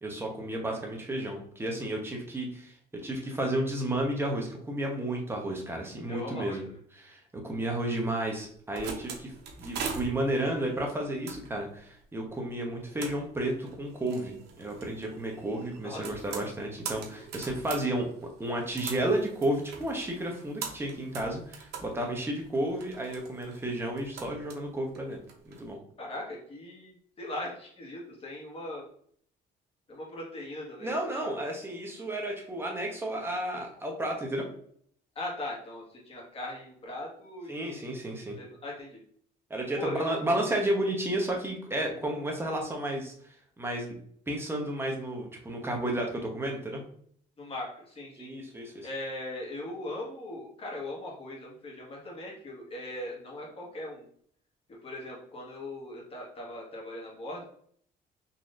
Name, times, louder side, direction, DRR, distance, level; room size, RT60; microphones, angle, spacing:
voice 1, 0.0-2.7 3.0-6.6 6.9-18.1 18.4-25.2 25.4-25.8 30.8-34.5 37.5-38.4 39.5-43.1 43.6-44.0 44.3-46.8 48.2-48.9, right 1 dB, 15° right, 0 dB, 1.0 m, -32 dB
voice 2, 6.1-6.6 15.8-16.1 26.0-26.9 27.2-28.8 29.9-31.3 35.1-37.8 38.4-39.0 39.8-40.2 47.4-48.3 48.8-54.0 54.8-57.4, left 1 dB, 35° left, -3 dB, 1.5 m, -39 dB
sound 1, 8.4-25.6, right 5 dB, 75° right, 0.8 m, -43 dB
4.1 x 2.9 x 2.5 m, 0.62 s
cardioid pair, 110°, 17 cm